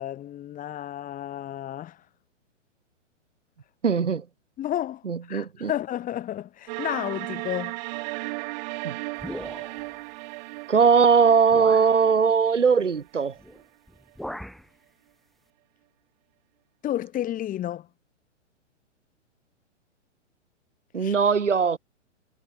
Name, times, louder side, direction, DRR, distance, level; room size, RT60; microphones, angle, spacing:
voice 1, 0.0-2.0 4.6-7.8 16.8-17.9 21.0-21.1, left 12 dB, 20° left, 4.6 m, -31 dB
voice 2, 3.8-4.2 5.1-5.7 8.8-8.9 10.7-13.3 20.9-21.8, right 6 dB, 80° right, 2.3 m, -20 dB
sound 1, 6.7-13.6, right 24 dB, 35° right, 1.2 m, -36 dB
sound 2, 9.2-10.0 10.9-11.0 11.5-12.0 13.4-13.6 13.9-14.7, equal, ahead, 1.4 m, -39 dB
figure-of-eight pair, 115°, 36 cm